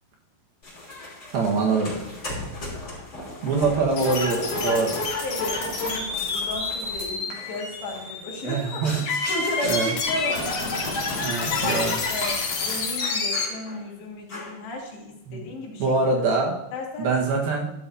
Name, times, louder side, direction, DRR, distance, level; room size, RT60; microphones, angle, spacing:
sound 1, 0.6-11.3 11.6-12.0 12.3-12.5 13.0-13.9 14.3-14.7, left 2 dB, 25° left, 3.5 m, -38 dB
voice 1, 1.3-1.9 3.4-5.0 8.4-9.0 9.6-9.9 11.2-12.0 15.3-15.4 15.8-16.6 17.0-17.7, right 4 dB, 65° right, -1 dB, 3.2 m, -24 dB
sound 2, 4.0-13.4, left 3 dB, 55° left, 3.0 m, -28 dB
voice 2, 5.2-8.8 9.3-11.3 11.6-15.9 16.7-17.1, left 2 dB, 80° left, -2 dB, 4.2 m, -34 dB
12.0 x 11.0 x 2.8 m, 0.90 s
omnidirectional pair, 4.8 m